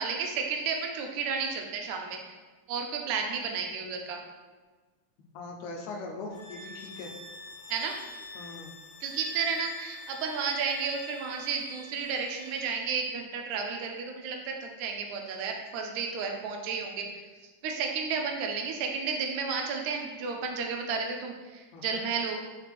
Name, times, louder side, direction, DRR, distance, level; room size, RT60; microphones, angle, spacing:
voice 1, 0.0-2.4 2.7-4.2 7.7-8.0 9.0-17.2 17.6-22.4, right 5 dB, 80° right, 2 dB, 1.8 m, -32 dB
voice 2, 5.3-7.1 8.4-8.7 9.0-9.1 21.7-22.1, left 3 dB, 75° left, 1 dB, 1.7 m, -41 dB
sound 1, 6.3-12.7, left 2 dB, 60° left, 1.0 m, -46 dB
6.5 x 2.4 x 3.3 m, 1.3 s
omnidirectional pair, 3.4 m